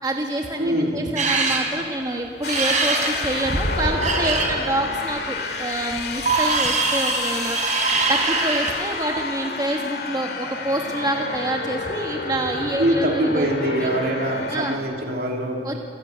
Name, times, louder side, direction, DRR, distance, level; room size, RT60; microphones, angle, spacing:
voice 1, 0.0-13.9 14.5-14.8 15.6-15.8, right 1 dB, 20° right, 1 dB, 1.5 m, -27 dB
voice 2, 0.6-1.1 12.8-15.8, right 1 dB, 60° right, 1 dB, 3.0 m, -23 dB
sound 1, 1.2-1.6 2.5-4.5 5.9-8.8, right 3 dB, 45° right, 4.2 m, -22 dB
sound 2, 2.4-14.8, left 3 dB, 65° left, 2.2 m, -30 dB
27.5 x 15.5 x 9.3 m, 2.6 s
head